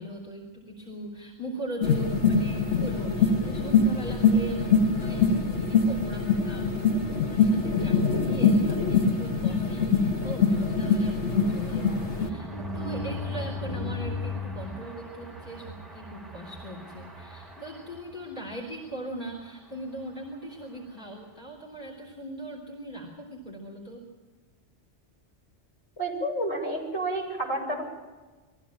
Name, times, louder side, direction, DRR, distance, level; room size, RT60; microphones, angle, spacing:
voice 1, 0.0-24.1, right 1 dB, 45° left, -2 dB, 3.8 m, -40 dB
sound 1, 1.8-12.3, left 4 dB, 90° left, 2.0 m, -24 dB
sound 2, 10.1-18.5 18.9-19.1 19.4-19.5 19.7-20.0, left 2 dB, ahead, 1.6 m, -38 dB
voice 2, 26.0-27.8, right 1 dB, 70° left, -3 dB, 7.1 m, -30 dB
22.5 x 15.5 x 7.4 m, 1.3 s
omnidirectional pair, 1.1 m